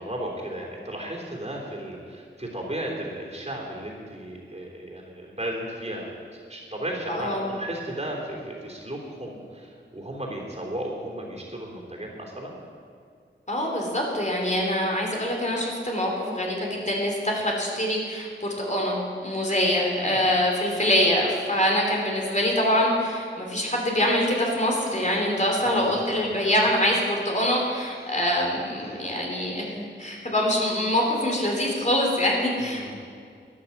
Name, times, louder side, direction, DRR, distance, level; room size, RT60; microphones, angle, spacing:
voice 1, 0.0-12.6 19.9-20.3 25.6-26.3 27.9-28.0 28.8-29.0 32.6-32.9, right 1 dB, 35° right, -1 dB, 3.4 m, -35 dB
voice 2, 7.1-7.5 13.5-32.9, left 1 dB, 40° left, -1 dB, 3.0 m, -24 dB
12.5 x 10.5 x 7.3 m, 2.2 s
wide cardioid pair, 55°, 20 cm